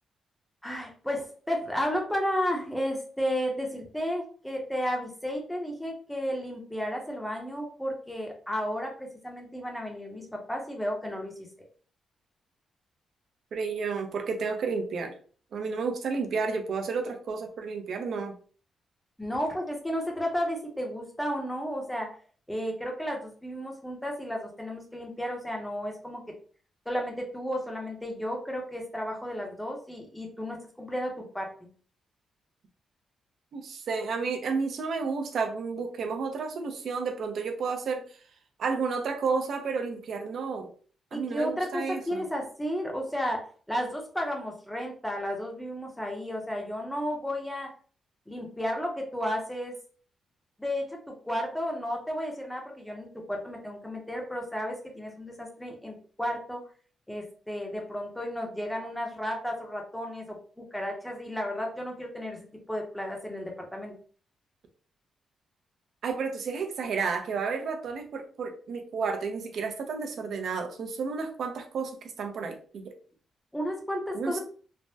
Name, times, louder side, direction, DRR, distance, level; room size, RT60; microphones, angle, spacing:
voice 1, 0.6-11.3 19.2-22.2 22.5-26.2 26.9-31.5 41.1-47.7 48.3-49.7 50.6-56.6 57.1-63.9 73.5-74.4, equal, 5° left, 1 dB, 0.6 m, -33 dB
voice 2, 13.5-15.1 15.5-18.3 33.5-38.0 38.6-40.7 41.1-42.3 66.0-73.0 74.1-74.4, right 5 dB, 55° right, 5 dB, 0.5 m, -31 dB
3.3 x 2.1 x 2.7 m, 0.42 s
wide cardioid pair, 170°, 0 cm